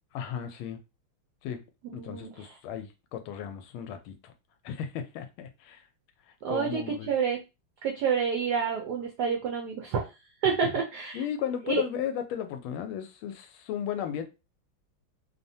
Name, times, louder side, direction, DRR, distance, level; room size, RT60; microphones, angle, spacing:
voice 1, 0.1-0.8 1.4-1.6 1.9-4.3 4.6-5.9 6.3-7.1 10.4-10.7 11.1-14.2, left 9 dB, 80° left, 1.4 m, -35 dB
voice 2, 1.9-2.3 6.4-7.4 7.8-10.1 10.4-11.2 11.7-11.8, right 6 dB, 80° right, 0.9 m, -28 dB
3.4 x 2.0 x 2.6 m
omnidirectional pair, 2.3 m